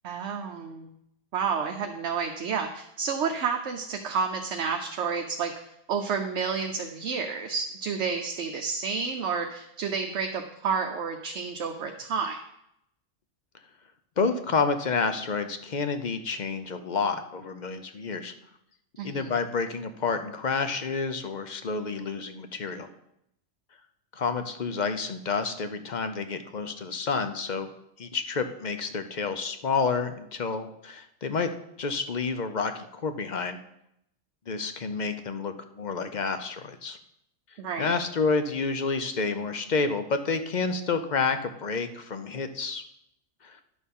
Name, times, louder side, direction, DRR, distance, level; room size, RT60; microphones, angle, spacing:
voice 1, 0.0-0.9 1.3-5.5 5.9-12.4 19.0-19.3 37.6-37.9, right 5 dB, 65° right, 4 dB, 1.1 m, -30 dB
voice 2, 14.2-18.3 19.0-22.9 24.1-27.7 28.0-31.5 31.8-33.6 34.5-37.0 37.8-42.8 43.4-43.6, left 4 dB, 45° left, 9 dB, 0.7 m, -29 dB
10.5 x 6.8 x 5.4 m, 0.78 s
omnidirectional pair, 1.3 m